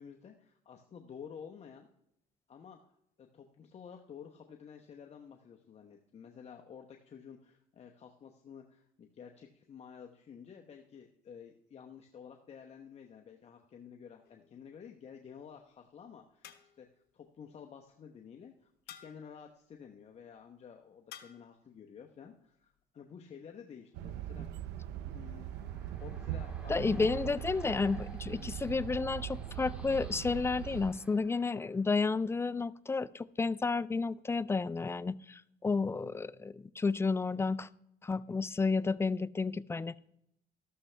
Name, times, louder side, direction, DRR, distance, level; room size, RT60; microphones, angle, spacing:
voice 1, 0.0-1.9 2.5-2.8 3.2-16.5 16.8-16.9 17.1-24.5 25.1-25.5 26.0-27.3 28.4-28.6, left 7 dB, 40° left, 3 dB, 0.9 m, -51 dB
sound 1, 14.2-14.8 16.4-17.0 18.9-19.4 21.1-21.6, left 10 dB, 75° left, 1.0 m, -53 dB
sound 2, 23.9-30.9, right 11 dB, 90° right, 0.6 m, -41 dB
sound 3, 24.8-32.3, equal, 5° right, 1.9 m, -56 dB
voice 2, 26.7-37.7 38.0-40.0, left 4 dB, 15° left, 18 dB, 0.3 m, -31 dB
13.0 x 12.5 x 3.3 m, 0.77 s
cardioid pair, 110°, 17 cm